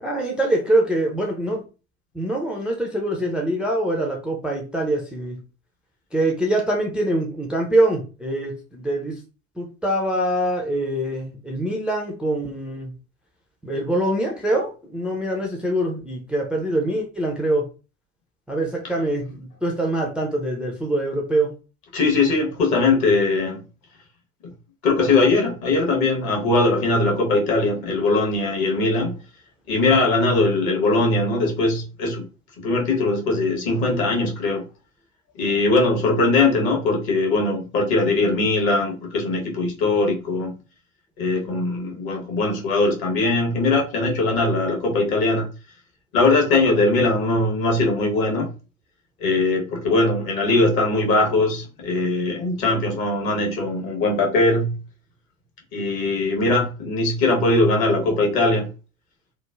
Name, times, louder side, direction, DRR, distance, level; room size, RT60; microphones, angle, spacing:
voice 1, 0.0-1.6 2.1-5.4 6.1-9.2 9.6-12.9 13.6-17.7 18.5-21.5, right 1 dB, 5° right, 0.3 m, -24 dB
voice 2, 21.9-23.6 24.8-29.2 29.7-32.3 32.6-34.6 35.4-40.6 41.2-45.5 46.1-48.5 49.2-54.7 55.7-58.7, left 2 dB, 55° left, 1.1 m, -20 dB
3.1 x 2.0 x 2.3 m
figure-of-eight pair, 65°, 43 cm